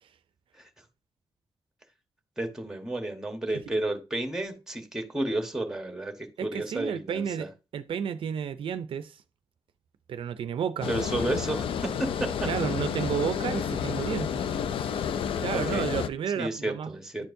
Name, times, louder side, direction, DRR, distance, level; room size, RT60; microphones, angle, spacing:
voice 1, 2.4-6.1 6.4-7.5 10.9-12.3 15.5-15.8 16.4-17.3, right 1 dB, 5° right, 1.2 m, -31 dB
voice 2, 6.4-9.2 10.1-10.9 12.5-14.3 15.4-16.9 17.2-17.3, right 8 dB, 75° right, 0.4 m, -31 dB
Water, 10.8-16.1, left 7 dB, 85° left, 0.4 m, -30 dB
10.5 x 4.4 x 2.6 m
wide cardioid pair, 120°, 9 cm